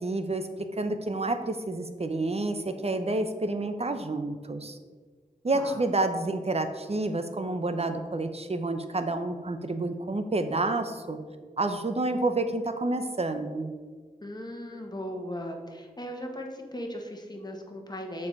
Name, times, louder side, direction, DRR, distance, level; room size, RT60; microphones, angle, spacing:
voice 1, 0.0-4.8 5.4-11.2 11.6-13.7, right 2 dB, 40° right, 8 dB, 0.7 m, -29 dB
voice 2, 14.2-18.3, equal, 25° left, 2 dB, 1.3 m, -37 dB
7.2 x 4.8 x 5.3 m, 1.5 s
wide cardioid pair, 55°, 15 cm